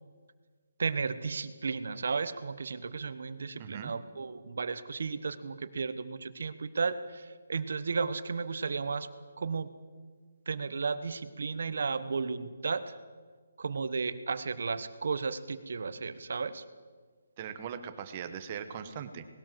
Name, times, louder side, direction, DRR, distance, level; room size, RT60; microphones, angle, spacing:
voice 1, 0.8-9.1 9.4-9.7 10.5-12.9 13.6-16.6, right 4 dB, 55° right, 13 dB, 1.2 m, -34 dB
voice 2, 3.6-3.9 17.4-19.3, right 8 dB, 20° right, 9 dB, 1.2 m, -40 dB
19.5 x 18.0 x 7.6 m, 1.5 s
hypercardioid pair, 175°, 0 cm